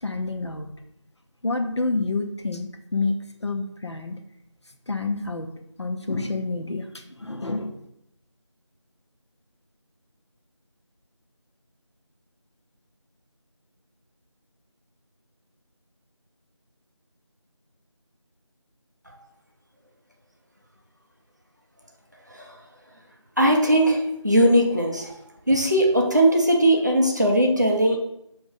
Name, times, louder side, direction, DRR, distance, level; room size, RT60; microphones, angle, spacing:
voice 1, 0.0-0.7 1.4-4.2 4.9-5.5 5.8-7.8, left 3 dB, 60° left, 5 dB, 0.5 m, -28 dB
voice 2, 22.3-22.6 23.4-25.2 25.5-28.0, right 1 dB, 35° right, 1 dB, 0.6 m, -20 dB
4.9 x 2.6 x 3.9 m, 0.80 s
figure-of-eight pair, 175°, 16 cm